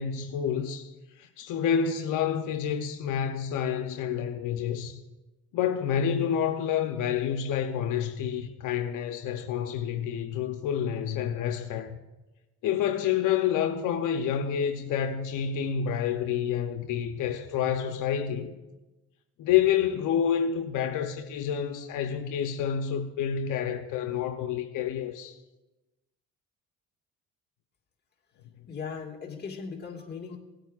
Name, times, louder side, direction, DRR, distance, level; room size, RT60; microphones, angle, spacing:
voice 1, 0.0-5.0 5.5-12.0 12.6-18.5 19.4-25.4, left 8 dB, 85° left, 0.7 m, -28 dB
voice 2, 28.7-30.4, left 5 dB, 35° left, 1.8 m, -38 dB
17.5 x 9.0 x 2.4 m
cardioid pair, 90°, 30 cm